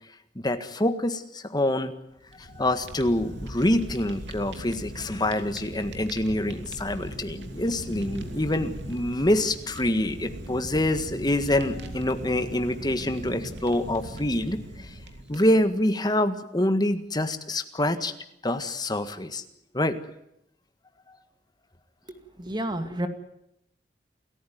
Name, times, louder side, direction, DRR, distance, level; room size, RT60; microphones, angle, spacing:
voice 1, 0.3-1.9 2.4-14.9 15.3-18.1 18.4-19.4 19.7-20.0, left 1 dB, 25° left, 9 dB, 1.7 m, -26 dB
Fire, 2.2-15.8, right 1 dB, 90° right, 2.9 m, -39 dB
voice 2, 22.4-23.1, right 1 dB, 25° right, 8 dB, 2.2 m, -29 dB
28.5 x 14.5 x 9.4 m, 0.79 s
head